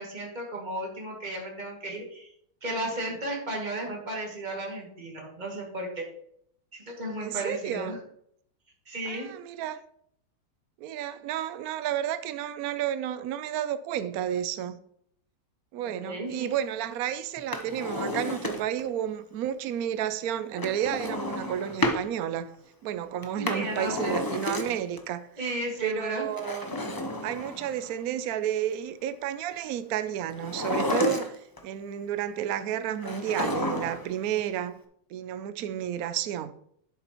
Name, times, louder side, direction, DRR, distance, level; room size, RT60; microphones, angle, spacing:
voice 1, 0.0-2.3 2.6-6.0 6.7-8.0 8.9-9.3 15.8-16.5 23.4-24.2 25.4-26.3, right 1 dB, 25° right, 2.3 m, -34 dB
voice 2, 7.2-8.0 9.1-9.8 10.8-14.8 15.7-22.6 22.8-26.8 27.2-34.8 35.1-36.5, right 10 dB, 70° right, 0.9 m, -31 dB
Drawer open or close, 17.4-18.9 20.6-22.1 23.2-25.0 26.3-27.9 30.3-31.6 33.0-34.1 34.4-34.5, left 1 dB, 30° left, 0.4 m, -31 dB
11.0 x 7.6 x 3.0 m
omnidirectional pair, 1.8 m